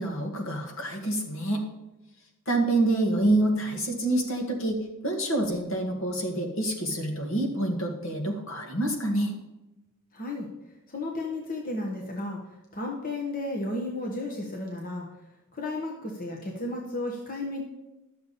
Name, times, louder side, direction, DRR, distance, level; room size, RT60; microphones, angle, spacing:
voice 1, 0.0-1.6 2.5-9.3, right 1 dB, 65° left, 2 dB, 1.8 m, -27 dB
voice 2, 10.1-10.5 10.9-12.4 12.7-15.1 15.5-17.6, left 2 dB, 40° left, 0 dB, 1.2 m, -33 dB
11.5 x 7.0 x 4.1 m, 1.0 s
head